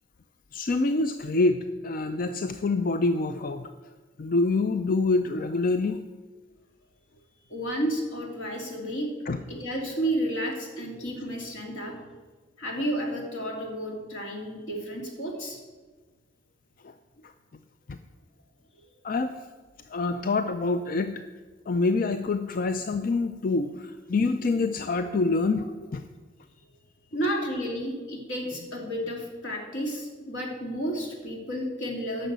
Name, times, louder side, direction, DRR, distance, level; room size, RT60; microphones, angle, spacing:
voice 1, 0.5-3.7 4.2-6.0 9.3-9.4 16.8-16.9 17.9-18.0 19.0-19.3 19.9-21.1 21.7-26.0, left 3 dB, 45° left, 9 dB, 0.4 m, -26 dB
voice 2, 7.5-9.1 9.5-11.9 12.6-15.6 27.1-32.3, equal, 80° left, 0 dB, 2.8 m, -31 dB
10.0 x 6.4 x 8.0 m, 1.3 s
head